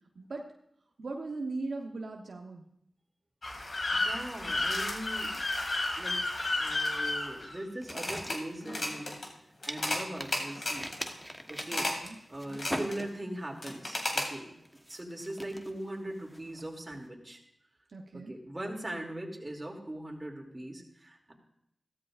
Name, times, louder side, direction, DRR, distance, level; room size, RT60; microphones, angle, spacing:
voice 1, 0.2-0.5 1.0-2.6 12.0-12.2 17.9-18.3, right 3 dB, 70° right, 2 dB, 0.9 m, -38 dB
sound 1, 3.4-8.4 8.6-9.3 9.6-10.0 10.3-11.1 11.6-12.1 12.4-13.0 13.6-14.3, left 2 dB, 60° left, 2.2 m, -32 dB
voice 2, 3.9-5.4 6.0-9.1 9.7-10.9 11.5-11.9 12.3-14.6 14.9-17.4 18.1-21.3, right 1 dB, 30° right, 0 dB, 2.7 m, -40 dB
sound 2, 7.8-9.3 9.7-13.5 13.8-14.2 14.7-17.0, equal, ahead, 1.1 m, -42 dB
15.5 x 13.0 x 2.5 m, 0.76 s
cardioid pair, 45°, 0 cm